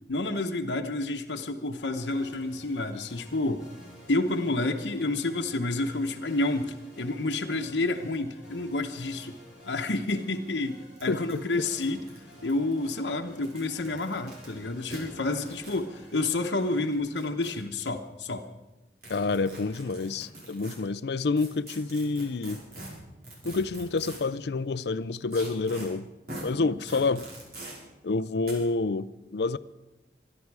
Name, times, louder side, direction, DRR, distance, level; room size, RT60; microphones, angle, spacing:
voice 1, 0.1-3.7 4.1-9.4 9.7-12.1 12.4-18.4 26.5-27.1, left 2 dB, 85° left, 1.0 m, -29 dB
sound 1, 2.0-17.0, equal, 5° right, 7.5 m, -52 dB
sound 2, 10.2-10.3 10.5-10.6 11.0-11.1 11.3-12.7 13.3-14.5 14.9-15.0 15.4-15.8 16.9-17.8 19.0-20.7 21.4-24.3 25.3-25.9 26.3-26.4 26.9-27.7 28.4-28.5, right 1 dB, 60° right, 5.2 m, -43 dB
voice 2, 11.1-11.6 19.1-22.6 23.4-26.1 26.4-27.3 28.0-29.6, left 3 dB, 70° left, 0.5 m, -28 dB
24.0 x 11.0 x 4.8 m
head